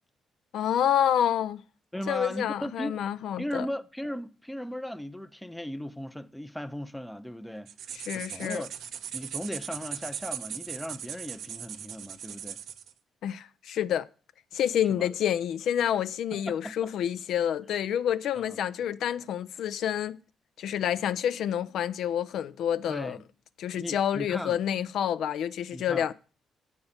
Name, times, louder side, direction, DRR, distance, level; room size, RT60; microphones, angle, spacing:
voice 1, 0.5-1.6 2.1-3.7 7.9-8.7 13.2-14.1 14.5-20.2 20.6-23.2 23.6-26.1, left 9 dB, 75° left, 0.4 m, -28 dB
voice 2, 1.9-3.0 3.4-7.7 8.1-8.7 9.1-12.6 14.9-15.1 16.3-16.9 18.3-18.6 22.9-23.2 23.8-24.6 25.7-26.1, equal, 5° left, 0.5 m, -37 dB
sound 1, 7.7-12.9, right 9 dB, 70° right, 0.5 m, -39 dB
7.9 x 5.4 x 7.2 m
cardioid pair, 90°, 0 cm